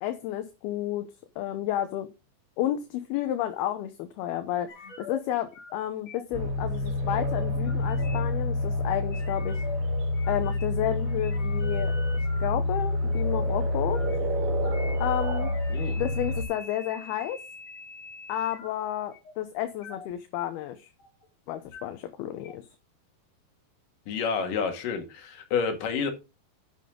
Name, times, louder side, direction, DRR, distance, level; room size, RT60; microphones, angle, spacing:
voice 1, 0.0-1.1 1.4-2.1 2.6-9.6 10.3-12.0 12.4-14.0 15.0-15.5 16.0-17.4 18.3-20.9 21.5-22.7, left 12 dB, 75° left, 2.5 m, -31 dB
sound 1, 4.7-5.2 5.5-5.8 6.1-6.4 7.3-8.2 9.1-9.8 10.1-10.8 11.1-12.5 13.1-13.3 13.8-14.1 14.6-18.7 19.1-19.3 19.8-20.1 20.5-21.3 21.5-21.8 22.4-22.5, left 3 dB, 40° left, 3.7 m, -44 dB
sound 2, 6.3-16.4, left 1 dB, 60° right, 3.0 m, -28 dB
voice 2, 24.1-26.1, left 6 dB, 60° left, 3.1 m, -29 dB
10.5 x 7.7 x 3.7 m
omnidirectional pair, 5.0 m